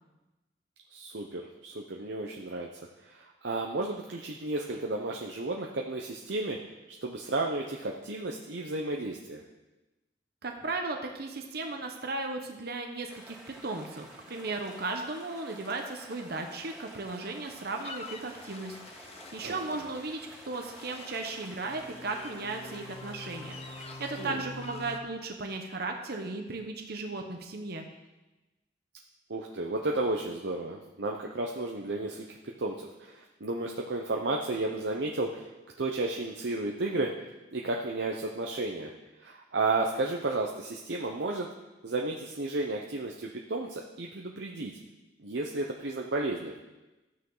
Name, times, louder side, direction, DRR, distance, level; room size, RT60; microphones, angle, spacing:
voice 1, 0.9-2.7 3.1-6.6 7.0-9.4 19.4-19.6 24.2-24.5 29.3-35.5 35.8-37.1 37.5-38.9 39.2-41.5 41.8-44.7 45.2-46.5, right 2 dB, 90° right, 0 dB, 0.8 m, -33 dB
voice 2, 10.4-13.4 13.6-19.1 19.3-23.6 23.8-27.9, right 3 dB, 60° right, 3 dB, 1.0 m, -36 dB
sound 1, 13.1-24.3, equal, 15° right, 2.8 m, -51 dB
sound 2, 17.4-25.0, left 3 dB, 35° left, 0.8 m, -46 dB
13.0 x 8.5 x 4.0 m, 1.1 s
head